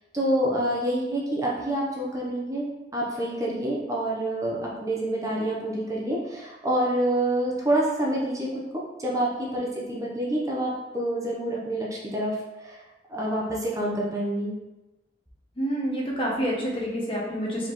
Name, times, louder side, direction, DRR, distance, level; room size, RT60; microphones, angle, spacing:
voice 1, 0.1-2.7 2.9-12.8 13.1-14.5, right 1 dB, 20° right, -4 dB, 0.8 m, -27 dB
voice 2, 15.6-17.7, equal, 30° left, -3 dB, 0.9 m, -28 dB
4.6 x 3.6 x 3.1 m, 1.0 s
head